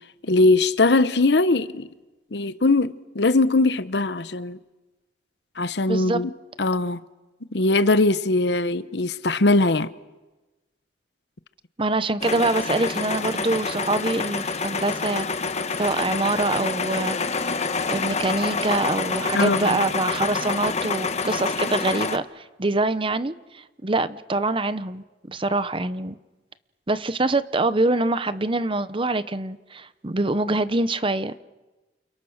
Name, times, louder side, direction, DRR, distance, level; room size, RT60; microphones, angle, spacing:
voice 1, 0.2-1.9 2.3-4.6 5.6-6.3 6.6-7.0 7.5-9.9 19.3-19.8, left 2 dB, 65° left, 1.0 m, -20 dB
voice 2, 5.9-6.2 11.8-15.3 15.8-17.5 17.9-26.1 26.9-31.4, right 2 dB, 30° right, 0.9 m, -25 dB
sound 1, 12.2-22.2, left 4 dB, 40° left, 1.3 m, -27 dB
30.0 x 29.0 x 6.5 m
head